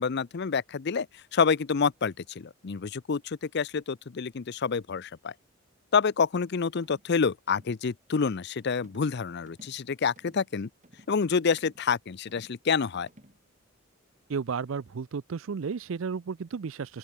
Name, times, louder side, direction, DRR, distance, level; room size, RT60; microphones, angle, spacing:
voice 1, 0.0-5.3 5.9-10.7 11.1-13.1, left 5 dB, 55° left, 0.5 m, -28 dB
sound 1, 6.8-7.1 7.5-7.8 8.2-8.4 8.8-9.2 9.5-9.8 10.2-10.5 10.8-11.2 11.6-11.9 12.3-12.6 13.1-13.4, right 1 dB, 35° right, 4.9 m, -56 dB
voice 2, 14.3-17.0, right 5 dB, 70° right, 0.5 m, -33 dB
open air
head